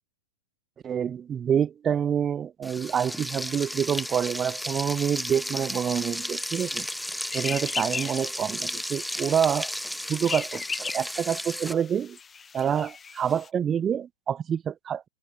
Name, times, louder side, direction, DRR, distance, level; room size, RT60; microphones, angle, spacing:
voice 1, 0.8-6.9 7.3-9.7 10.1-12.2 12.5-15.1, right 8 dB, 25° right, 0.8 m, -27 dB
Frying (food), 2.6-11.7, equal, ahead, 0.4 m, -34 dB
sound 1, 6.4-13.5, left 6 dB, 20° left, 2.3 m, -39 dB
hypercardioid pair, 105°, 0 cm